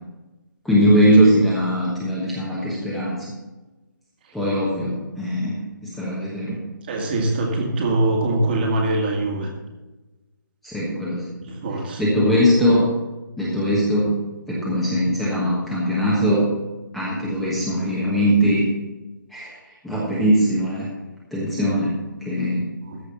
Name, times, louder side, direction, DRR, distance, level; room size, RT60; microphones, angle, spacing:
voice 1, 0.6-3.2 4.3-6.6 10.6-11.2 11.7-12.8 13.4-14.1 14.5-16.4 16.9-18.6 19.3-20.9 21.3-22.0 22.2-22.6, equal, ahead, -7 dB, 1.3 m, -20 dB
voice 2, 6.9-9.5 11.6-12.0 22.9-23.0, right 2 dB, 30° right, 1 dB, 1.9 m, -22 dB
14.0 x 4.8 x 7.0 m, 1.1 s
hypercardioid pair, 165°, 11 cm